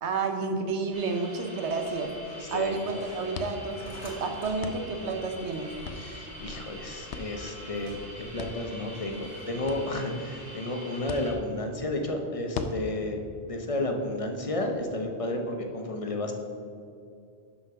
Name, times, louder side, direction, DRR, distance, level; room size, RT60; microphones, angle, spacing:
voice 1, 0.0-2.1 2.5-5.7, right 4 dB, 80° right, 5 dB, 1.1 m, -30 dB
sound 1, 0.9-11.3, equal, 40° right, 1.7 m, -45 dB
sound 2, 1.5-14.8, left 4 dB, 85° left, 0.9 m, -43 dB
sound 3, 1.7-9.8, left 1 dB, 60° left, 2.0 m, -50 dB
voice 2, 2.4-2.8 5.9-16.3, left 1 dB, 35° left, 3 dB, 0.7 m, -32 dB
6.1 x 5.7 x 5.7 m, 2.5 s
omnidirectional pair, 1.1 m